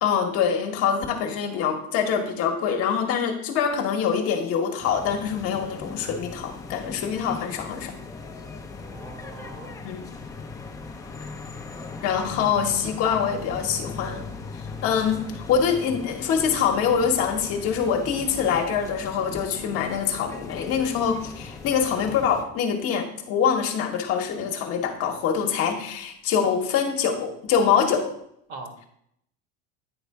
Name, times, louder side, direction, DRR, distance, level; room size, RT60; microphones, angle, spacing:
voice 1, 0.0-7.9 9.8-10.0 12.0-14.2 14.8-28.1, left 7 dB, 50° left, 4 dB, 1.2 m, -24 dB
sound 1, 4.8-22.4, left 4 dB, 10° left, 0.6 m, -39 dB
voice 2, 8.8-9.9 12.2-12.8 28.5-28.7, right 3 dB, 55° right, 4 dB, 1.6 m, -43 dB
9.5 x 3.3 x 4.7 m, 0.71 s
cardioid pair, 145°, 30 cm